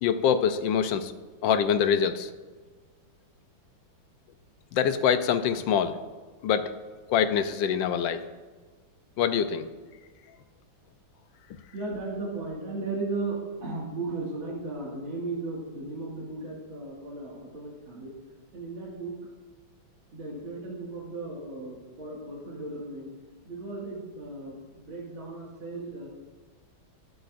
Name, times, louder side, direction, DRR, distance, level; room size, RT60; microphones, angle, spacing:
voice 1, 0.0-1.1 1.4-2.3 4.7-6.0 6.4-6.7 7.1-8.2 9.2-9.7, left 8 dB, 75° left, 10 dB, 1.2 m, -24 dB
voice 2, 11.7-18.1 18.5-19.2 20.1-23.1 23.5-26.1, right 3 dB, 70° right, -5 dB, 2.8 m, -36 dB
21.5 x 7.9 x 2.5 m, 1.4 s
omnidirectional pair, 2.3 m